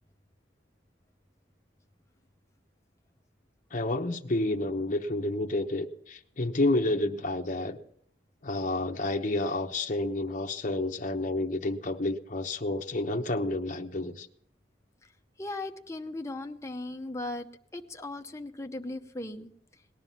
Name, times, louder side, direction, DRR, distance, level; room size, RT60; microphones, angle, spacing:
voice 1, 3.7-7.8 8.4-14.3, left 2 dB, 40° left, 2 dB, 0.9 m, -30 dB
voice 2, 15.4-19.5, left 2 dB, 15° left, 5 dB, 0.8 m, -38 dB
19.0 x 11.0 x 5.7 m, 0.69 s
head